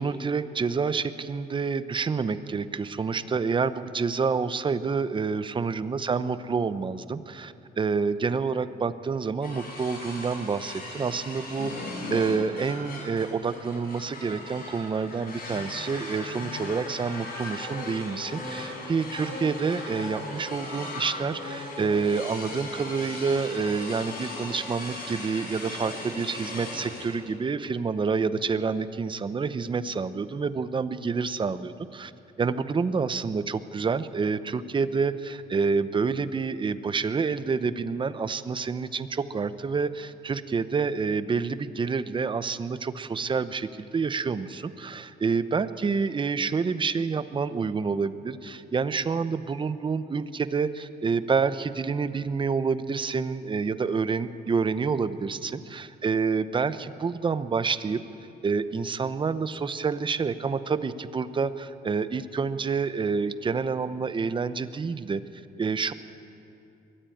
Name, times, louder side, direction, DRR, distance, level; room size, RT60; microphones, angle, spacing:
voice 1, 0.0-11.7 12.1-32.1 32.4-58.0 58.4-65.2 65.6-65.9, right 5 dB, 30° right, 13 dB, 0.8 m, -28 dB
sound 1, 9.4-27.1, left 2 dB, 65° left, 5.9 m, -38 dB
22.5 x 13.5 x 9.2 m, 2.8 s
cardioid pair, 110°, 17 cm